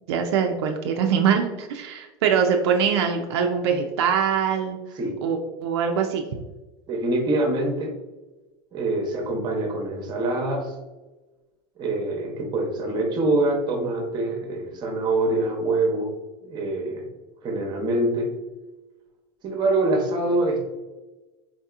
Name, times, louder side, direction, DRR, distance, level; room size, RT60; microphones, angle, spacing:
voice 1, 0.1-4.8 5.2-6.2, right 7 dB, 85° right, 4 dB, 0.4 m, -23 dB
voice 2, 6.9-7.9 8.7-10.7 11.8-16.1 16.4-17.1 17.4-18.3 19.4-20.6, right 2 dB, 30° right, 2 dB, 0.8 m, -24 dB
4.0 x 2.8 x 2.3 m, 1.2 s
supercardioid pair, 125°, 14 cm